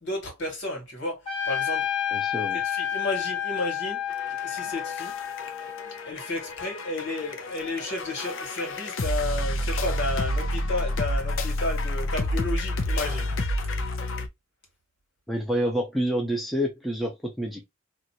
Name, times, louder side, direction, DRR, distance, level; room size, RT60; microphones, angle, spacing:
voice 1, 0.0-1.9 2.6-4.0 4.4-5.1 6.0-13.3, left 2 dB, 60° left, 1.8 m, -32 dB
Trumpet, 1.3-6.0, left 10 dB, 25° left, 1.5 m, -30 dB
voice 2, 2.1-2.6 15.3-17.6, equal, ahead, 0.6 m, -28 dB
sound 1, 4.1-14.3, left 1 dB, 80° left, 0.6 m, -29 dB
3.0 x 2.5 x 2.7 m
head